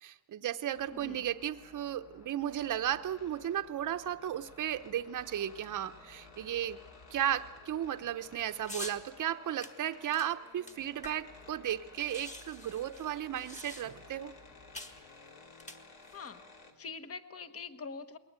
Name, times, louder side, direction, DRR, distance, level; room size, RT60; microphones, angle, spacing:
voice 1, 0.0-6.8 7.1-14.3, right 11 dB, 45° right, 9 dB, 0.8 m, -35 dB
sound 1, 0.7-16.7, left 3 dB, 55° left, 3.2 m, -55 dB
sound 2, 8.6-9.0 9.6-11.4 11.7-11.8 12.0-14.1 14.7-15.0 15.5-16.3, left 1 dB, 15° left, 1.9 m, -46 dB
voice 2, 16.8-18.2, left 5 dB, 35° left, 8 dB, 1.2 m, -44 dB
21.5 x 19.0 x 8.1 m, 1.1 s
cardioid pair, 125°, 42 cm